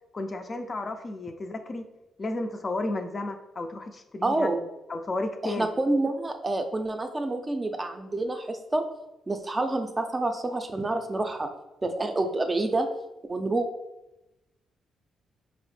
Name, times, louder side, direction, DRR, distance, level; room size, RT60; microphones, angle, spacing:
voice 1, 0.1-1.8 2.2-4.5 4.9-5.7, left 2 dB, 35° left, 6 dB, 0.4 m, -32 dB
voice 2, 4.2-4.6 5.4-8.8 9.3-11.5 11.8-12.9 13.3-13.7, right 2 dB, 25° right, 6 dB, 0.4 m, -28 dB
4.1 x 2.0 x 3.1 m, 0.94 s
cardioid pair, 70°, 0 cm